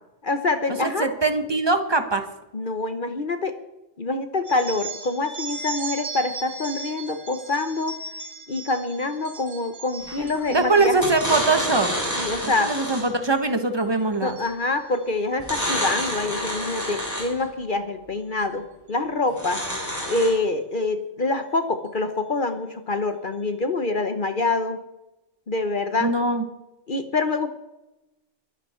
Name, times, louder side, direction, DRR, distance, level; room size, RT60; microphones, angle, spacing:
voice 1, 0.2-1.1 2.5-3.6 4.0-7.9 8.5-11.1 12.1-12.7 14.2-19.6 20.1-24.8 25.5-26.1 26.9-27.5, left 3 dB, 45° left, 9 dB, 1.1 m, -26 dB
voice 2, 0.8-2.3 10.2-11.9 12.6-14.4 26.0-26.4, right 3 dB, 20° right, 8 dB, 1.3 m, -22 dB
sound 1, 4.4-11.7 12.2-12.6 12.9-13.4 13.8-15.1 16.1-16.3 17.3-17.4 18.4-18.5 18.9-19.0 19.5-19.8, right 4 dB, 70° right, 4.2 m, -38 dB
sound 2, 10.1-10.4 10.9-13.2 15.4-17.4 19.3-20.3, equal, 15° left, 7.8 m, -28 dB
23.0 x 12.0 x 4.4 m, 0.97 s
omnidirectional pair, 1.3 m